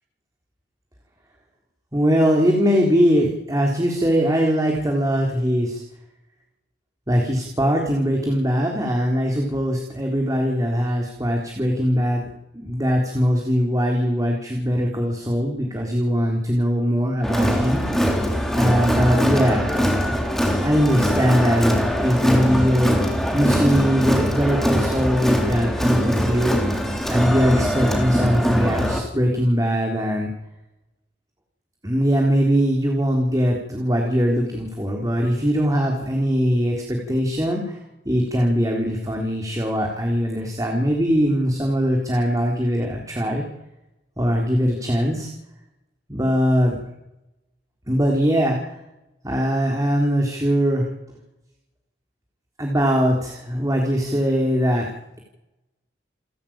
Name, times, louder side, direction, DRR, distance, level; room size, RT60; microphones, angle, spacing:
voice 1, 1.9-5.8 7.1-12.2 12.5-17.8 18.5-19.7 20.6-26.8 27.1-30.3 31.8-37.8 38.1-43.4 44.2-45.3 46.1-46.8 47.9-48.8 49.2-50.9 52.6-54.9, equal, 20° right, 1 dB, 3.8 m, -21 dB
Crowd, 17.2-29.0, equal, ahead, 3.7 m, -22 dB
29.0 x 12.5 x 9.0 m, 0.91 s
head